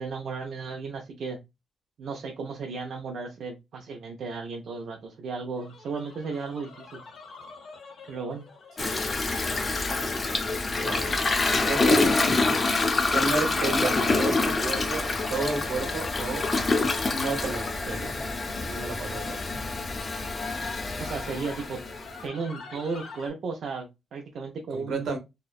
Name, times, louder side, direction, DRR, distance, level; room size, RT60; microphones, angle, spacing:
voice 1, 0.0-1.4 2.0-7.0 8.1-8.5 21.0-21.8 22.2-25.2, right 4 dB, 60° right, 0.4 m, -35 dB
sound 1, 5.6-23.3, left 4 dB, 65° left, 0.7 m, -47 dB
Toilet flush, 8.8-22.2, left 3 dB, 30° left, 0.4 m, -26 dB
voice 2, 10.7-11.2 11.6-12.4 13.1-16.5 17.1-18.2 18.5-19.6 24.7-25.2, right 3 dB, 75° right, 0.8 m, -32 dB
2.8 x 2.0 x 2.3 m
cardioid pair, 130°, 0 cm